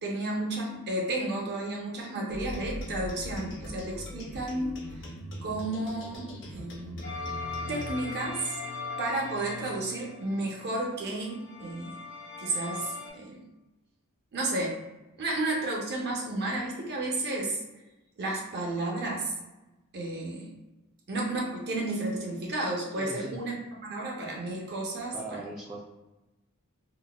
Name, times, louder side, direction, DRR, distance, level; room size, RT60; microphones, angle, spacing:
voice 1, 0.0-5.1 5.4-7.1 7.7-8.6 9.0-12.0 12.4-13.4 14.3-14.8 15.2-17.6 18.2-19.3 19.9-20.5 21.1-25.4, right 2 dB, 50° right, -2 dB, 0.7 m, -32 dB
sound 1, 2.3-7.9, equal, 55° left, 0.7 m, -40 dB
sound 2, 7.0-13.1, left 4 dB, 85° left, 1.1 m, -40 dB
voice 2, 22.9-23.4 25.1-25.8, right 2 dB, 15° right, -5 dB, 0.4 m, -39 dB
3.8 x 2.0 x 2.3 m, 1.0 s
head